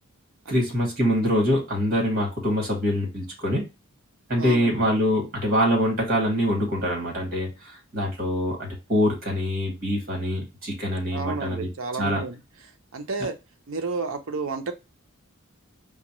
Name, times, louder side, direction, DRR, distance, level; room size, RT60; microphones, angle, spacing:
voice 1, 0.5-3.6 4.3-7.5 7.9-11.7 12.0-12.2, equal, 45° right, 1.9 m, -24 dB
voice 2, 4.4-4.9 11.1-12.4 12.9-13.4 13.7-14.7, right 3 dB, 70° right, 0.6 m, -31 dB
4.9 x 2.2 x 3.0 m
head